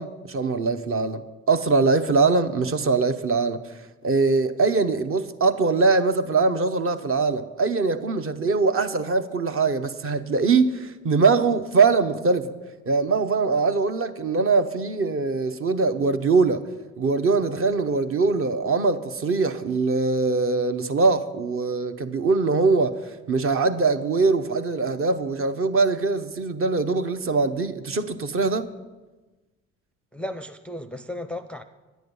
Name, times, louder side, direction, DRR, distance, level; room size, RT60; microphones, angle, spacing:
voice 1, 0.0-3.6 4.0-12.5 12.9-16.6 17.0-28.7, right 4 dB, 40° right, 0.8 m, -22 dB
voice 2, 30.1-31.6, left 1 dB, 5° left, 0.5 m, -34 dB
10.5 x 9.2 x 5.4 m
hypercardioid pair, 55°, 35 cm